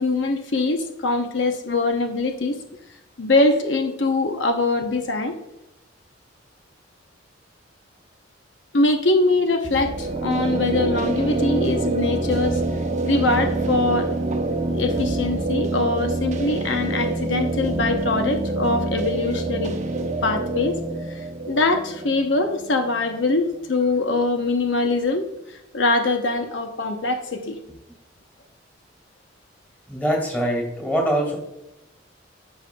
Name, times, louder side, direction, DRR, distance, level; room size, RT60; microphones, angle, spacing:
voice 1, 0.0-2.5 3.2-5.3 8.7-12.6 13.0-14.1 14.7-20.8 21.1-21.2 21.5-27.6, left 2 dB, 75° left, 5 dB, 0.8 m, -23 dB
sound 1, 9.6-23.3, right 2 dB, 40° right, 0.7 m, -26 dB
voice 2, 29.9-31.4, equal, 10° left, 1 dB, 2.1 m, -23 dB
13.5 x 5.5 x 2.3 m, 0.90 s
head